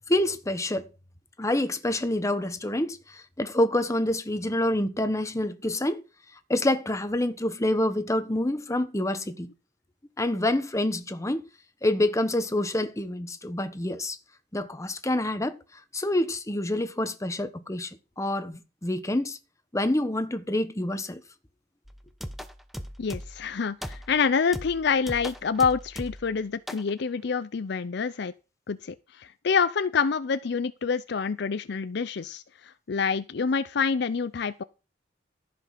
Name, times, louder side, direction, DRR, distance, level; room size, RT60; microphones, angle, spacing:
voice 1, 0.1-0.9 1.4-6.0 6.5-9.5 10.2-11.4 11.8-14.2 14.5-15.6 15.9-19.4 19.7-21.2, left 1 dB, 15° left, 1.1 m, -27 dB
sound 1, 21.9-23.5 23.8-24.2 24.5-26.3 26.7-26.9, equal, ahead, 0.8 m, -38 dB
voice 2, 23.0-28.3 28.7-34.6, left 5 dB, 65° left, 0.5 m, -27 dB
14.5 x 5.3 x 5.8 m
head